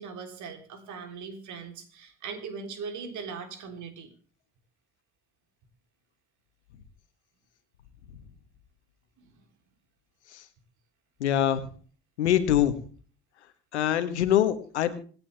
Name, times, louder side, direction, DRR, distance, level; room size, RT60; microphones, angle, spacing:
voice 1, 0.0-4.1 9.2-9.3, right 5 dB, 60° right, 6 dB, 3.7 m, -40 dB
voice 2, 11.2-11.6 12.2-12.8 13.7-14.9, left 11 dB, 85° left, 11 dB, 1.5 m, -23 dB
26.0 x 10.0 x 3.5 m, 0.42 s
hypercardioid pair, 50°, 33 cm